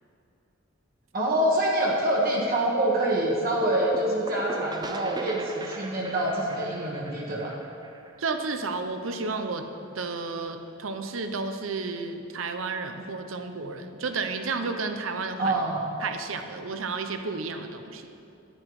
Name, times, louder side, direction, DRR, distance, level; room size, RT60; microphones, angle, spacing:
voice 1, 1.1-7.5 15.4-15.8, right 1 dB, 50° right, -3 dB, 1.4 m, -26 dB
sound 1, 3.6-9.2, right 2 dB, 20° right, 0.6 m, -39 dB
voice 2, 8.2-9.7 9.9-15.6 16.0-18.1, right 4 dB, 80° right, 7 dB, 0.8 m, -32 dB
10.5 x 9.8 x 4.8 m, 2.7 s
head